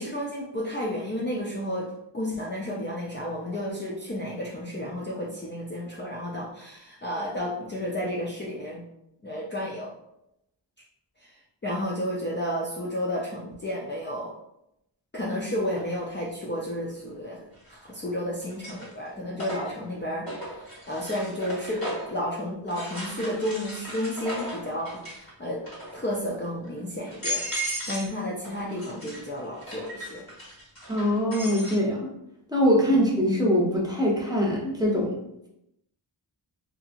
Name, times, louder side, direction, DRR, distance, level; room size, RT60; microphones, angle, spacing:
voice 1, 0.0-8.8 9.2-9.9 11.2-14.3 15.1-17.4 17.7-25.6 25.9-27.4 27.9-30.2 32.9-33.0, equal, 25° left, -5 dB, 0.4 m, -32 dB
sound 1, 15.8-15.9 17.6-18.0 18.4-22.2 22.7-25.3 25.6-26.1 26.6-26.7 27.1-28.1 28.4-31.8, equal, 50° left, 1.3 m, -36 dB
voice 2, 30.9-32.1 32.5-35.2, equal, 10° right, -4 dB, 0.7 m, -23 dB
2.7 x 2.6 x 2.4 m, 0.81 s
wide cardioid pair, 70°, 46 cm